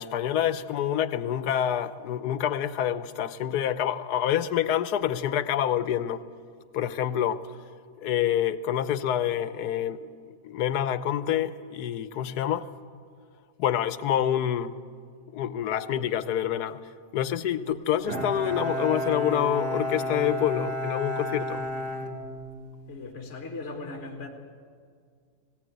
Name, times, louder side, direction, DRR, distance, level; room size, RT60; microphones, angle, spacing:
voice 1, 0.0-6.2 6.7-7.4 8.0-10.1 10.4-12.7 13.6-14.7 15.3-16.8 17.1-21.7, left 10 dB, 80° left, 1.3 m, -27 dB
Bowed string instrument, 18.1-22.9, equal, 85° right, 2.1 m, -32 dB
voice 2, 22.9-24.3, left 3 dB, 50° left, 1.8 m, -38 dB
18.0 x 18.0 x 9.3 m
omnidirectional pair, 1.7 m